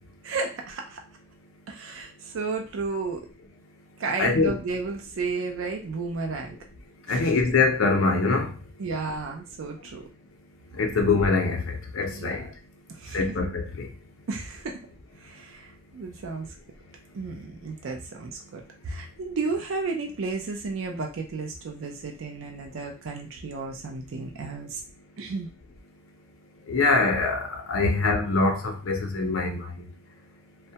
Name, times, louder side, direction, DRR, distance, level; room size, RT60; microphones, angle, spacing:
voice 1, 0.2-1.0 1.7-3.3 4.0-6.6 7.1-7.3 8.8-10.0 12.1-12.5 13.0-13.2 14.3-14.8 15.2-16.5 17.1-24.8 25.2-25.5, right 4 dB, 75° right, 0.4 m, -33 dB
voice 2, 4.2-4.5 7.1-8.5 10.8-12.5 13.1-13.9 26.7-29.9, left 3 dB, 80° left, 0.6 m, -24 dB
2.1 x 2.1 x 2.7 m
head